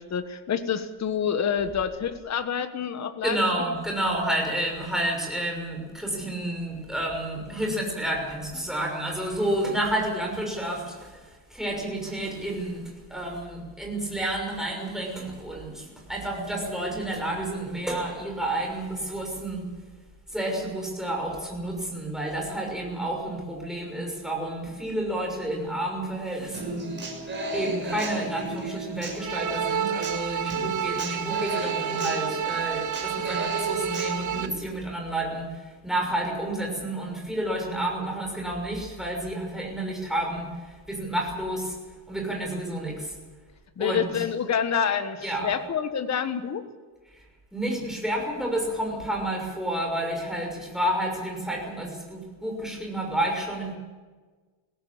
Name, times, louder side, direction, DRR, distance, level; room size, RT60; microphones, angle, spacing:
voice 1, 0.0-3.4 43.8-46.7, left 7 dB, 35° left, 9 dB, 1.5 m, -27 dB
voice 2, 3.2-11.2 11.5-19.7 20.3-26.9 27.5-41.8 42.1-43.2 43.8-44.3 45.2-45.6 47.5-53.7, right 1 dB, ahead, 0 dB, 6.3 m, -30 dB
Human voice / Acoustic guitar, 26.5-34.5, right 2 dB, 25° right, 6.7 m, -35 dB
sound 1, 29.2-34.5, right 8 dB, 40° right, 0.8 m, -29 dB
21.5 x 17.5 x 8.7 m, 1.4 s
cardioid pair, 150°, 47 cm